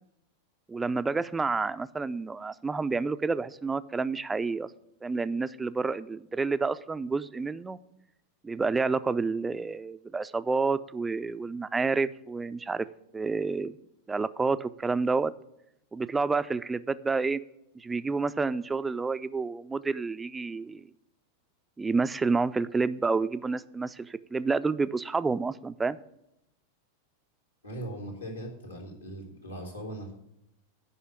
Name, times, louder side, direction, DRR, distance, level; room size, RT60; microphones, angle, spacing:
voice 1, 0.7-4.7 5.0-7.8 8.4-12.9 13.1-13.7 14.1-15.3 15.9-17.4 17.8-20.9 21.8-26.0, right 4 dB, 10° right, 14 dB, 0.4 m, -29 dB
voice 2, 27.6-30.1, right 1 dB, 85° left, -2 dB, 2.8 m, -39 dB
9.3 x 5.6 x 8.1 m, 0.82 s
figure-of-eight pair, 90°, 0 cm